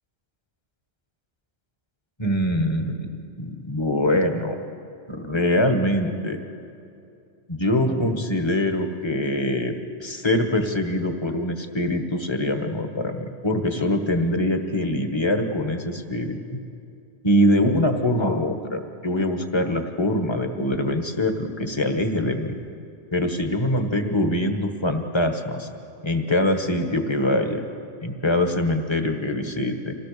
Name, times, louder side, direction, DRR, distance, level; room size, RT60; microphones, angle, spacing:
voice 1, 2.2-4.6 5.1-6.4 7.5-16.6 17.2-22.5 23.1-25.7 26.0-27.6 28.0-29.9, left 1 dB, 25° left, 5 dB, 1.4 m, -23 dB
26.0 x 17.0 x 6.8 m, 2.6 s
omnidirectional pair, 1.0 m